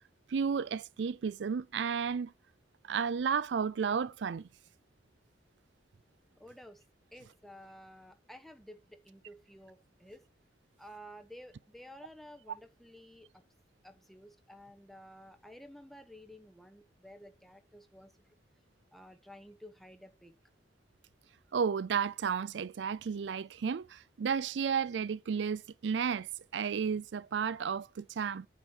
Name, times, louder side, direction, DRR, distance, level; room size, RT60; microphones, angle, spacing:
voice 1, 0.3-2.3 2.8-4.5 21.5-28.5, right 6 dB, 80° right, 0.4 m, -33 dB
voice 2, 6.3-6.8 7.1-10.2 10.8-13.4 13.8-18.3 18.9-20.3, equal, ahead, 1.3 m, -53 dB
9.0 x 4.5 x 6.3 m
head